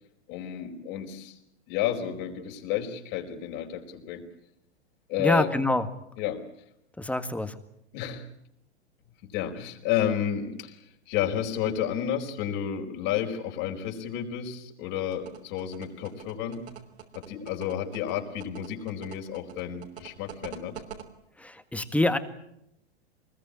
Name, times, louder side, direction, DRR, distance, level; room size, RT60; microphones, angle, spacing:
voice 1, 0.3-1.4 1.7-4.3 5.1-5.5 6.2-6.5 7.9-8.3 9.2-16.6 17.1-20.7, left 10 dB, 45° left, 4 dB, 4.7 m, -31 dB
voice 2, 5.2-5.8 7.0-7.5 21.4-22.2, left 1 dB, 5° left, 10 dB, 1.8 m, -25 dB
sound 1, 15.1-21.0, right 9 dB, 70° right, 3.5 m, -43 dB
25.0 x 21.0 x 8.8 m, 0.79 s
hypercardioid pair, 105°, 33 cm